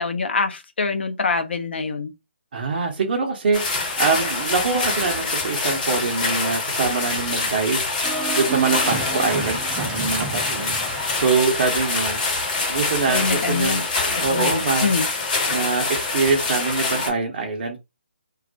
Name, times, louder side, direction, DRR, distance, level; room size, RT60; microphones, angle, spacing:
voice 1, 0.0-2.1 13.1-13.8 14.3-15.1, left 4 dB, 65° left, 0.6 m, -24 dB
voice 2, 2.5-13.9 14.2-14.9 15.5-17.8, right 4 dB, 50° right, 0.6 m, -24 dB
sound 1, 3.5-17.1, left 3 dB, 40° left, 1.0 m, -25 dB
Organ, 8.0-13.7, right 6 dB, 10° right, 0.3 m, -33 dB
2.3 x 2.0 x 2.6 m
figure-of-eight pair, 140°, 6 cm